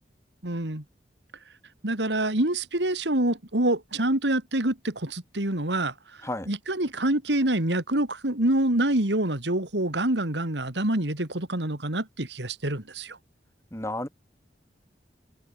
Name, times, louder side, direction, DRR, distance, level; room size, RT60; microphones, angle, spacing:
voice 1, 0.4-0.8 1.8-5.9 6.5-13.2, right 1 dB, 75° right, 3.2 m, -26 dB
voice 2, 13.7-14.1, left 1 dB, 15° left, 5.9 m, -32 dB
head